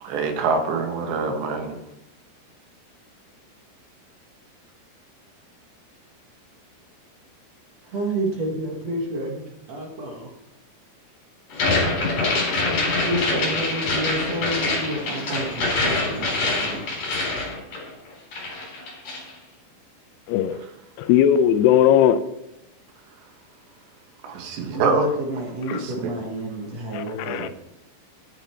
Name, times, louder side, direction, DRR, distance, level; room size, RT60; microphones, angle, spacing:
voice 1, 0.0-1.8 24.2-25.0 25.7-26.1, right 4 dB, 85° right, 3.7 m, -25 dB
voice 2, 7.8-10.3 13.0-16.9 24.3-24.5 24.7-27.5, right 1 dB, 55° right, 1.9 m, -29 dB
sound 1, 11.5-18.1 18.3-19.3, left 2 dB, 45° left, 5.0 m, -25 dB
voice 3, 20.3-20.6 21.0-22.2 25.7-25.8 26.9-27.5, left 10 dB, 80° left, 2.6 m, -18 dB
10.5 x 9.9 x 4.5 m
omnidirectional pair, 4.9 m